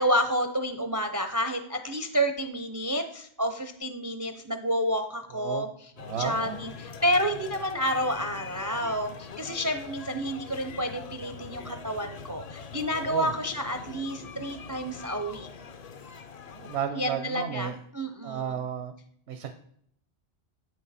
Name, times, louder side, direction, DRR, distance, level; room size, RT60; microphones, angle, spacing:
voice 1, 0.0-15.5 16.9-18.6, equal, 25° right, 7 dB, 0.4 m, -30 dB
voice 2, 5.3-5.7 6.0-6.7 12.9-13.3 16.5-17.8 18.2-18.9 19.3-19.5, right 8 dB, 75° right, 8 dB, 0.9 m, -33 dB
sound 1, 6.0-16.9, left 5 dB, 45° left, 0.5 m, -43 dB
8.6 x 6.3 x 4.1 m, 0.67 s
omnidirectional pair, 1.1 m